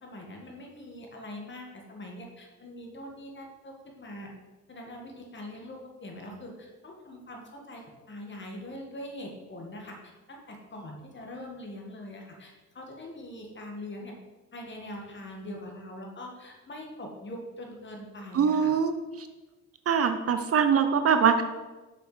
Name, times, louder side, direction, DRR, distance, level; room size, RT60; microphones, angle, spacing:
voice 1, 0.0-4.3 4.7-14.1 14.5-18.8, left 1 dB, 40° left, 1 dB, 2.0 m, -43 dB
voice 2, 18.3-19.3 19.9-21.4, right 7 dB, 50° right, 8 dB, 0.7 m, -23 dB
6.6 x 6.4 x 5.1 m, 1.2 s
cardioid pair, 90°, 30 cm